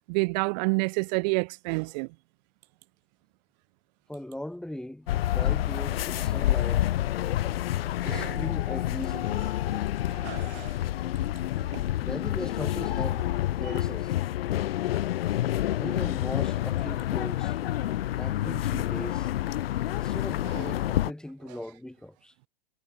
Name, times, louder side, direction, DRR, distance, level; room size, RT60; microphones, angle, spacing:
voice 1, 0.1-2.1 8.0-8.4 10.1-10.8 11.7-11.8 20.5-20.7, right 29 dB, 45° right, 1.0 m, -29 dB
voice 2, 4.1-6.9 8.0-9.6 12.0-13.2 13.6-14.1 15.8-17.6 18.2-19.3 19.8-22.3, left 1 dB, ahead, 2.7 m, -39 dB
sound 1, 5.1-21.1, left 13 dB, 80° left, 0.5 m, -28 dB
hypercardioid pair, 120°, 29 cm